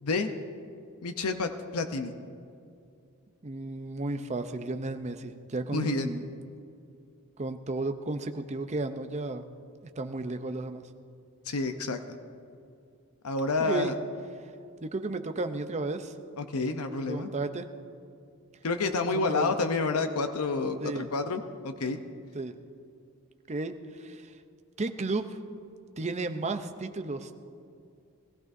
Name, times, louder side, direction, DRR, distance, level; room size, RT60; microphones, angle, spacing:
voice 1, 1.0-2.1 5.7-6.1 11.5-12.2 13.2-13.9 16.4-17.3 18.6-22.0, left 3 dB, 85° left, 7 dB, 0.7 m, -29 dB
voice 2, 3.4-6.2 7.4-9.5 10.0-10.8 13.6-13.9 14.8-16.1 17.1-17.7 19.1-19.5 20.8-21.1 22.3-22.5 23.5-24.3 24.8-25.4 26.0-27.3, right 2 dB, 30° right, 8 dB, 0.6 m, -33 dB
20.5 x 15.0 x 2.7 m, 2.5 s
head